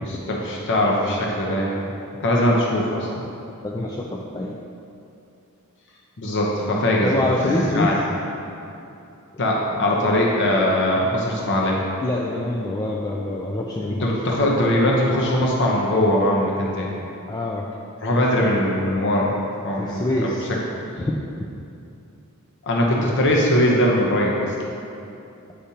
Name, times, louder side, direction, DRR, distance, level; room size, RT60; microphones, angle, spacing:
voice 1, 0.0-1.8 2.2-3.1 6.2-8.0 9.4-11.8 13.9-16.9 18.0-19.3 19.6-20.3 22.7-24.5, left 1 dB, 55° left, -2 dB, 0.8 m, -21 dB
voice 2, 3.6-4.6 7.0-8.0 12.0-14.1 17.3-17.7 18.3-18.6 19.8-20.5 21.0-21.1, left 2 dB, 20° left, -3 dB, 0.3 m, -25 dB
8.5 x 5.0 x 2.8 m, 2.7 s
head